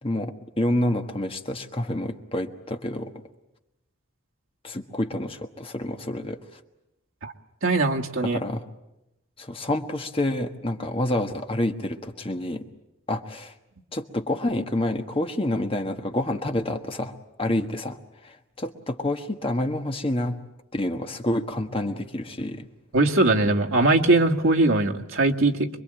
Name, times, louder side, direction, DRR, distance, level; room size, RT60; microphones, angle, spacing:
voice 1, 0.0-3.1 4.6-6.4 8.3-8.6 9.4-12.7 13.1-13.5 13.9-17.1 17.4-18.0 18.2-20.4 20.7-22.6, left 1 dB, 25° left, 6 dB, 1.4 m, -28 dB
voice 2, 7.6-8.4 22.9-25.7, right 2 dB, 80° right, 2 dB, 1.8 m, -21 dB
25.5 x 22.5 x 8.9 m, 0.91 s
head